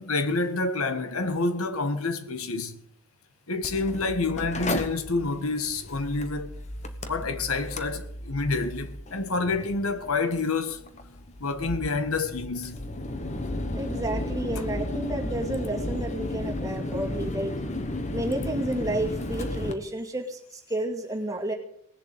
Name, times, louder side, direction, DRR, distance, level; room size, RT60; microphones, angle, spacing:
voice 1, 0.0-2.8 3.5-6.5 7.1-10.8 11.4-12.8, left 3 dB, 90° left, 1.5 m, -28 dB
Mechanical fan, 3.6-19.7, left 1 dB, 35° left, 1.2 m, -34 dB
voice 2, 13.7-17.6 18.1-21.5, right 1 dB, 15° right, 2.2 m, -31 dB
18.5 x 7.4 x 8.2 m
head